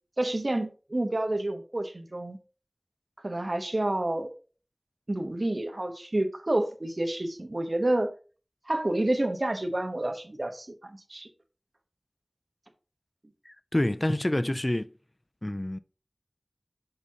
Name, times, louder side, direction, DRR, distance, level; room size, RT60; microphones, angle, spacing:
voice 1, 0.2-2.4 3.2-4.3 5.1-8.1 8.7-11.3, right 1 dB, 55° right, 1.0 m, -29 dB
voice 2, 13.5-14.9 15.4-15.8, left 1 dB, 35° left, 0.4 m, -27 dB
6.9 x 5.7 x 2.8 m
wide cardioid pair, 40°, 0 cm